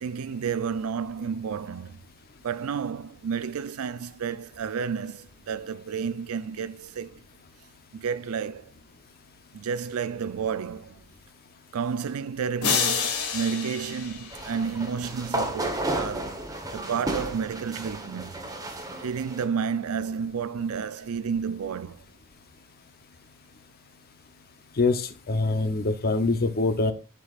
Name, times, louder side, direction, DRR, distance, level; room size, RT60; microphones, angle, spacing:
voice 1, 0.0-2.1 2.4-7.2 7.9-8.7 9.5-11.0 11.7-16.4 16.7-18.3 18.7-22.0, right 6 dB, 75° right, 0.4 m, -31 dB
sound 1, 12.6-15.0, left 6 dB, 80° left, 1.5 m, -28 dB
sound 2, 14.3-19.5, right 1 dB, 15° right, 1.1 m, -33 dB
voice 2, 24.7-26.9, left 3 dB, 45° left, 0.7 m, -24 dB
11.0 x 5.2 x 2.4 m
head